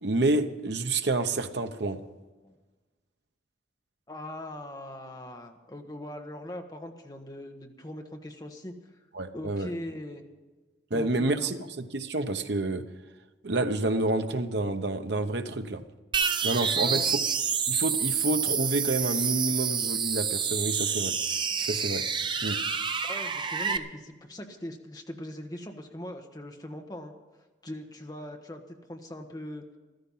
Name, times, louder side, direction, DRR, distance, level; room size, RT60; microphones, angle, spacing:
voice 1, 0.0-2.0 9.1-9.7 10.9-12.8 13.4-15.8 16.4-17.0 17.7-21.1 21.6-22.0 22.4-22.6, right 2 dB, 65° right, 8 dB, 1.0 m, -28 dB
voice 2, 4.1-8.7 9.3-10.2 10.9-11.5 16.7-17.1 23.0-27.1 27.6-28.6 28.9-29.6, left 1 dB, 20° left, 3 dB, 1.3 m, -40 dB
sound 1, 16.1-23.8, right 6 dB, 25° right, 0.6 m, -28 dB
14.5 x 13.5 x 5.6 m, 1.2 s
head